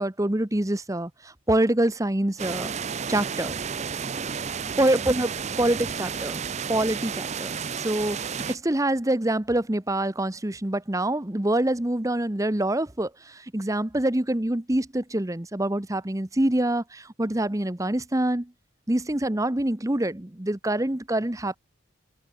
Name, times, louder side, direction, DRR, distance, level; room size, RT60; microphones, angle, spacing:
voice 1, 0.0-2.7 3.1-3.5 4.8-5.3 5.6-6.4 6.7-8.2 8.5-18.5 18.9-21.6, right 1 dB, 15° right, 0.9 m, -25 dB
sound 1, 2.4-8.6, right 6 dB, 35° right, 0.5 m, -32 dB
head